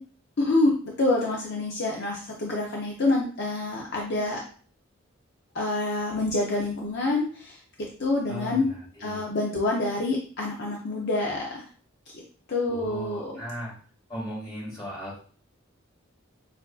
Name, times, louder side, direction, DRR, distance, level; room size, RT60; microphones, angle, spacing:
voice 1, 0.4-4.4 5.5-8.7 9.0-11.7 12.5-13.4, left 2 dB, 55° left, -2 dB, 0.6 m, -27 dB
voice 2, 8.3-9.2 12.7-13.7 14.1-15.2, right 1 dB, 20° left, -5 dB, 2.0 m, -37 dB
6.7 x 2.6 x 2.3 m, 0.43 s
head